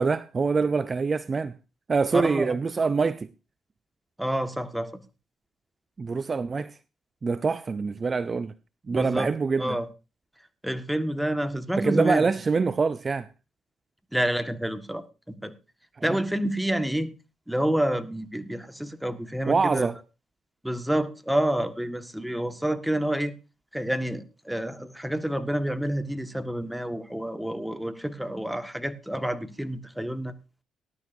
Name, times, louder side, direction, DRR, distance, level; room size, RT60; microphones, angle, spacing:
voice 1, 0.0-1.5 1.9-3.3 6.0-6.8 7.2-8.5 8.9-9.8 11.8-13.3 16.1-16.2 19.5-19.9, right 4 dB, 40° right, 0.5 m, -25 dB
voice 2, 2.1-2.6 4.2-4.9 8.9-9.3 9.6-9.9 10.6-12.3 14.1-15.5 16.0-17.1 17.5-19.9 20.6-23.3 23.7-30.3, right 1 dB, 5° right, 1.6 m, -28 dB
18.5 x 11.5 x 2.7 m
supercardioid pair, 55°, 0 cm